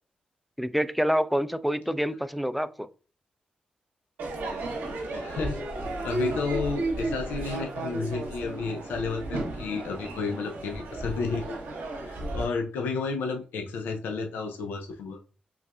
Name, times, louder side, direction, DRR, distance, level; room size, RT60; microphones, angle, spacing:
voice 1, 0.6-2.9, equal, ahead, 0.4 m, -27 dB
Crowd / Fireworks, 4.2-12.4, right 2 dB, 85° right, 0.9 m, -33 dB
voice 2, 5.1-5.6 6.0-11.6 11.9-15.2, left 4 dB, 85° left, 0.4 m, -32 dB
5.5 x 2.3 x 2.3 m
supercardioid pair, 40°, 3 cm